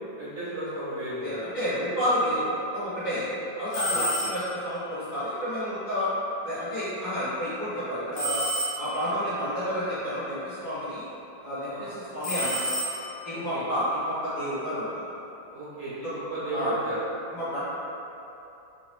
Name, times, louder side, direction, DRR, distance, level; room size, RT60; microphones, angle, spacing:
voice 1, 0.2-1.4 3.1-3.3 3.9-4.3 7.6-7.8 11.7-11.9 13.3-13.6 15.5-17.0, right 1 dB, 50° right, -12 dB, 1.1 m, -35 dB
voice 2, 1.2-3.2 3.6-6.1 6.4-8.4 8.8-11.0 11.4-12.6 13.2-15.0 16.5-16.8 17.3-17.6, equal, 55° left, -14 dB, 2.2 m, -30 dB
sound 1, 3.7-4.6 8.2-9.1 12.2-13.4, equal, 80° left, 1.8 m, -30 dB
4.0 x 3.1 x 3.0 m, 2.9 s
omnidirectional pair, 2.1 m